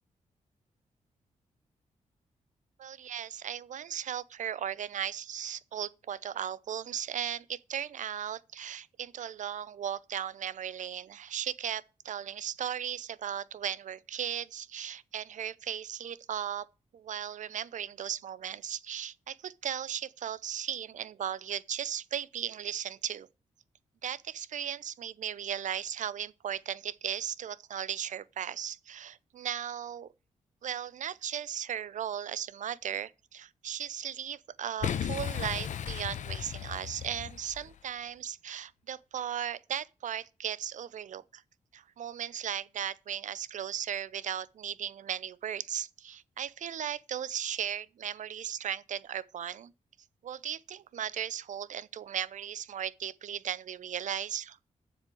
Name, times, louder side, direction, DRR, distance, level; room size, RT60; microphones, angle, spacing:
voice 1, 2.8-16.7 16.9-23.3 24.0-30.1 30.6-41.4 41.7-49.7 50.2-54.6, right 9 dB, 70° right, 0.7 m, -36 dB
Boom, 34.8-37.8, left 9 dB, 70° left, 0.8 m, -35 dB
7.8 x 7.3 x 8.6 m
cardioid pair, 110°, 13 cm